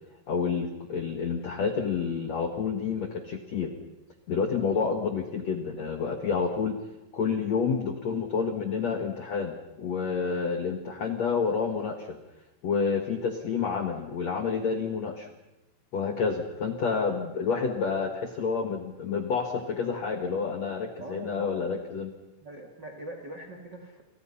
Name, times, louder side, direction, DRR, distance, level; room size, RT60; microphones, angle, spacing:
voice 1, 0.3-3.7 4.3-6.8 7.1-12.2 12.6-15.3 15.9-22.1, left 5 dB, 65° left, 6 dB, 1.6 m, -29 dB
voice 2, 21.0-21.7 22.4-24.0, right 2 dB, 40° right, 4 dB, 1.6 m, -42 dB
29.5 x 24.0 x 5.7 m, 0.99 s
omnidirectional pair, 5.5 m